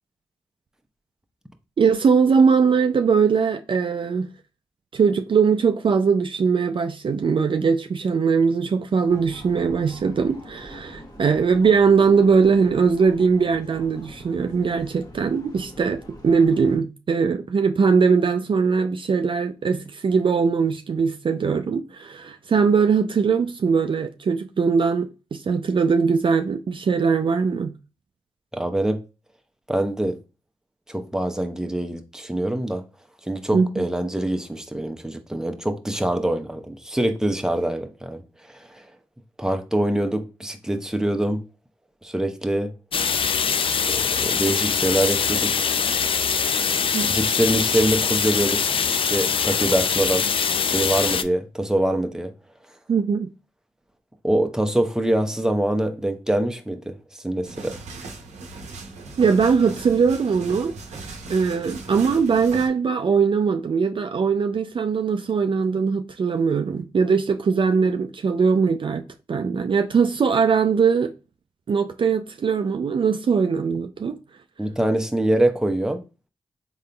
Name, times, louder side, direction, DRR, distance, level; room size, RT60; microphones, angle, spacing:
voice 1, 1.8-4.3 4.9-27.7 33.5-33.8 46.9-47.1 52.9-53.3 59.2-69.0 69.3-71.1 71.7-74.2, right 5 dB, 45° right, 0.4 m, -21 dB
sound 1, 9.1-16.8, equal, 35° left, 1.1 m, -44 dB
voice 2, 28.5-29.0 29.7-30.2 30.9-32.8 33.3-38.2 38.7-38.8 39.4-41.4 42.0-42.7 43.9-45.5 47.0-50.3 50.7-52.3 54.2-56.9 57.2-57.8 74.6-76.0, right 1 dB, 5° right, 0.7 m, -24 dB
sound 2, 42.9-51.2, left 6 dB, 50° left, 0.4 m, -23 dB
sound 3, 57.4-62.7, right 3 dB, 85° right, 0.7 m, -38 dB
3.8 x 3.6 x 2.2 m
cardioid pair, 50°, 11 cm